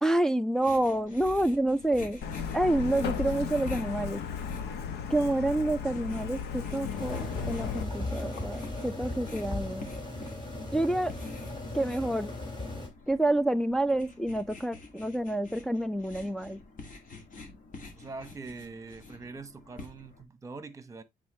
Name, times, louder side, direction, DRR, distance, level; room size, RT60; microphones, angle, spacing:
voice 1, 0.0-2.2 2.5-4.2 5.1-9.9 10.7-11.1 11.7-12.3 13.1-16.6, right 1 dB, 5° left, 0.3 m, -28 dB
sound 1, 0.6-20.2, left 3 dB, 50° left, 2.1 m, -48 dB
Truck, 2.2-7.8, left 7 dB, 80° left, 1.0 m, -35 dB
sound 2, 7.0-12.9, left 2 dB, 25° left, 2.7 m, -37 dB
voice 2, 17.9-21.0, right 3 dB, 20° right, 1.0 m, -43 dB
8.6 x 4.0 x 3.1 m
cardioid pair, 110°, 17 cm